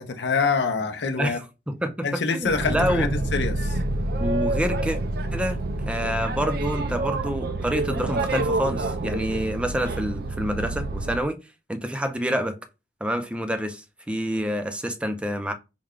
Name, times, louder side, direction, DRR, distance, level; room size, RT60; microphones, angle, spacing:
voice 1, 0.0-1.4 2.0-3.8, left 4 dB, 70° left, 0.6 m, -26 dB
voice 2, 1.7-3.1 4.2-5.0 5.3-11.4 11.7-12.6 13.0-15.5, equal, 5° right, 0.5 m, -27 dB
Boat Water vehicle, 2.4-11.3, right 2 dB, 60° right, 0.4 m, -27 dB
4.6 x 2.2 x 3.6 m
head